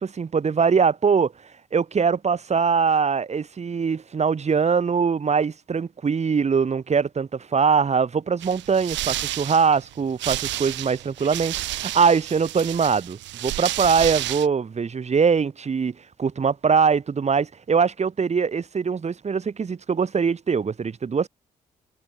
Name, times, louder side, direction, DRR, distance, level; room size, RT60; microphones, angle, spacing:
voice 1, 0.0-1.3 1.7-15.9 16.2-21.3, right 6 dB, 35° right, 1.2 m, -22 dB
sound 1, 8.4-14.5, right 15 dB, 75° right, 6.3 m, -31 dB
hypercardioid pair, 50°, 19 cm